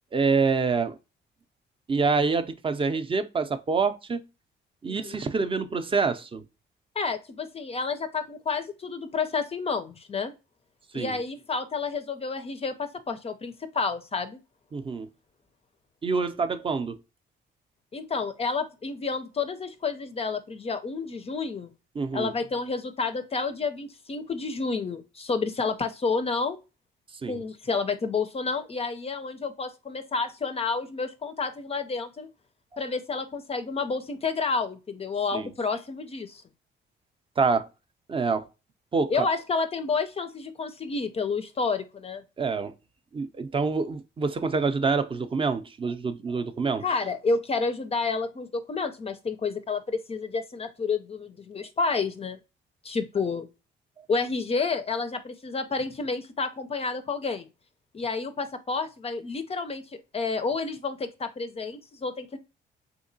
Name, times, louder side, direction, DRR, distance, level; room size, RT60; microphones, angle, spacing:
voice 1, 0.1-1.0 1.9-4.2 4.8-6.4 10.9-11.2 14.7-15.1 16.0-17.0 22.0-22.3 27.2-27.4 35.3-35.5 37.4-37.7 38.1-38.5 38.9-39.3 42.4-42.7 43.1-46.8, right 4 dB, 25° right, 0.5 m, -26 dB
voice 2, 4.9-5.2 7.0-10.3 10.9-14.4 17.9-21.7 22.1-26.6 27.3-32.3 32.8-36.4 39.1-42.2 46.8-52.4 52.8-53.5 54.1-57.5 57.9-59.8 60.1-62.4, left 4 dB, 30° left, 0.4 m, -30 dB
3.6 x 2.8 x 2.6 m
cardioid pair, 90°, 20 cm